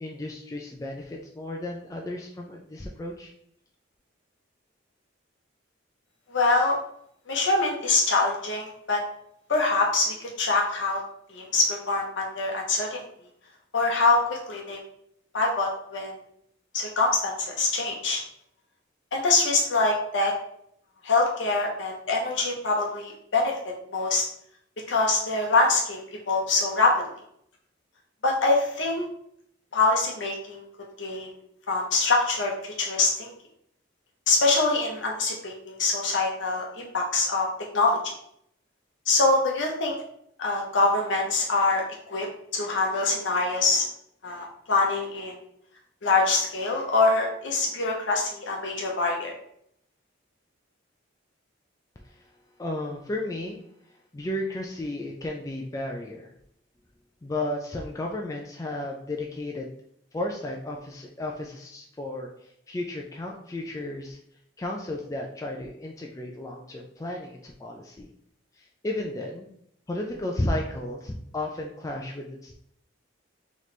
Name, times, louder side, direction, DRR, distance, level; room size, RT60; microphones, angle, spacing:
voice 1, 0.0-3.3 52.0-52.3 52.6-53.6 53.9-56.3 57.2-59.7 60.1-64.2 64.6-68.1 68.6-69.5 69.9-72.6, left 1 dB, 15° left, 0 dB, 0.3 m, -33 dB
voice 2, 6.3-6.8 7.3-9.0 9.5-11.0 11.3-13.0 13.7-14.8 15.3-16.1 16.7-18.2 19.1-20.3 21.0-23.5 23.9-24.2 24.9-26.9 28.2-29.0 29.7-30.7 31.0-31.4 31.7-33.3 34.3-37.5 37.7-38.0 39.1-40.0 40.4-42.3 42.5-43.8 44.2-45.4 46.0-49.3, left 3 dB, 70° left, 0 dB, 0.7 m, -24 dB
4.0 x 3.1 x 3.1 m, 0.70 s
head